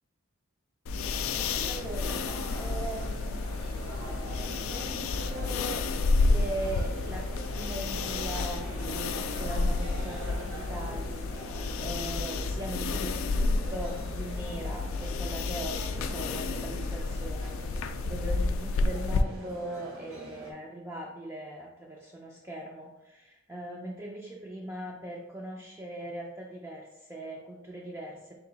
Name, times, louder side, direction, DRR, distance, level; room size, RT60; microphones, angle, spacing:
sound 1, 0.9-19.2, left 3 dB, 75° left, 0.3 m, -30 dB
sound 2, 0.9-20.5, right 1 dB, 70° right, 0.9 m, -43 dB
voice 1, 1.7-3.6 4.7-5.9 6.2-28.4, right 1 dB, 15° right, -3 dB, 0.3 m, -40 dB
3.8 x 2.6 x 3.9 m, 0.96 s
head